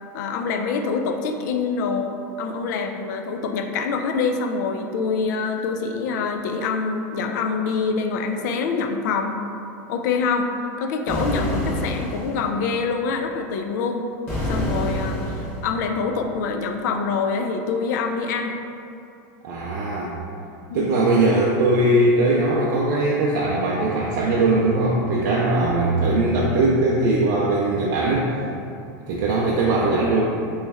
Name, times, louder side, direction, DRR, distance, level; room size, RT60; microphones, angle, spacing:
voice 1, 0.1-9.4 9.9-10.5 10.8-14.0 14.5-15.2 15.6-18.6 20.7-20.9, left 5 dB, 70° left, 5 dB, 0.4 m, -25 dB
sound 1, 11.1-12.5 14.3-15.7, left 1 dB, 20° left, 1.1 m, -26 dB
voice 2, 19.4-20.1 20.7-28.3 29.1-30.2, right 2 dB, 65° right, -4 dB, 0.4 m, -20 dB
3.1 x 3.1 x 3.4 m, 2.6 s
supercardioid pair, 145°, 10 cm